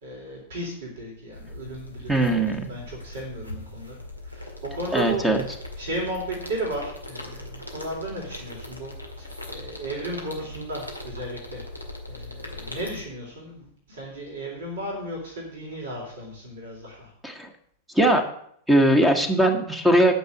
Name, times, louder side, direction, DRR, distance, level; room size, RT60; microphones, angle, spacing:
voice 1, 0.0-4.0 4.2-5.2 5.8-11.6 12.1-17.1, right 1 dB, 60° right, -2 dB, 3.6 m, -35 dB
sound 1, 1.3-13.0, left 1 dB, 90° right, 1.9 m, -40 dB
voice 2, 2.1-2.7 4.9-5.4 17.2-17.5 17.9-18.3 18.7-20.1, right 1 dB, 5° right, 5 dB, 1.4 m, -20 dB
9.3 x 6.3 x 7.9 m, 0.66 s
figure-of-eight pair, 90°, 0 cm